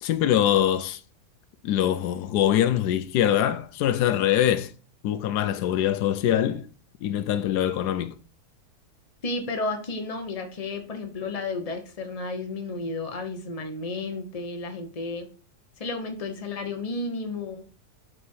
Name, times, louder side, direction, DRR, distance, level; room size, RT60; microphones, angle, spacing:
voice 1, 0.0-1.0 1.6-4.7 5.0-6.7 7.0-8.2, left 11 dB, 80° left, 1.2 m, -23 dB
voice 2, 9.2-15.3 15.8-17.6, left 3 dB, 25° left, 1.0 m, -32 dB
6.9 x 4.3 x 5.5 m
omnidirectional pair, 1.7 m